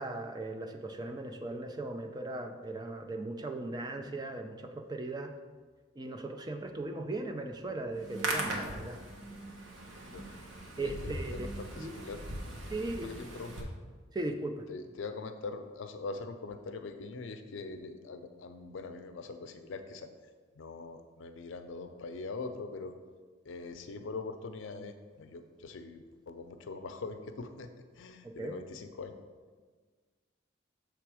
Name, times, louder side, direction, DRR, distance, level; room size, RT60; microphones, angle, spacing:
voice 1, 0.0-5.3 6.0-9.0 10.8-11.5 11.8-11.9 12.7-13.1 14.1-14.6 28.2-28.6, right 2 dB, 20° right, 5 dB, 0.4 m, -38 dB
Hands, 7.9-13.6, right 1 dB, 80° right, 1.0 m, -39 dB
voice 2, 10.8-12.3 13.0-13.7 14.7-20.1 20.6-23.0 23.5-27.7 28.0-29.2, left 3 dB, 80° left, 8 dB, 0.5 m, -42 dB
6.8 x 3.4 x 4.8 m, 1.5 s
head